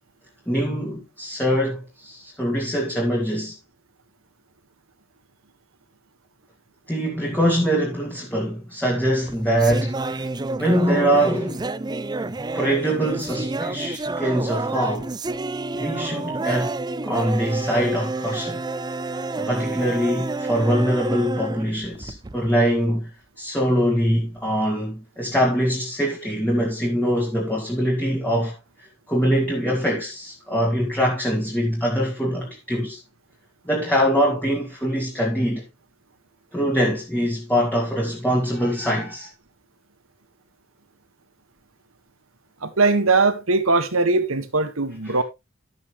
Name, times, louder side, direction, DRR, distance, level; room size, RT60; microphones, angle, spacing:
voice 1, 0.5-3.6 6.9-10.3 10.6-11.6 12.5-15.1 15.7-16.8 17.0-18.6 19.4-23.1 23.4-28.6 29.1-33.0 33.7-35.6 36.5-39.3 45.0-45.2, equal, 10° left, 2.3 m, -23 dB
sound 1, 9.1-22.5, right 3 dB, 20° right, 0.6 m, -29 dB
voice 2, 42.6-45.2, right 3 dB, 70° right, 1.6 m, -20 dB
12.0 x 8.2 x 3.1 m
head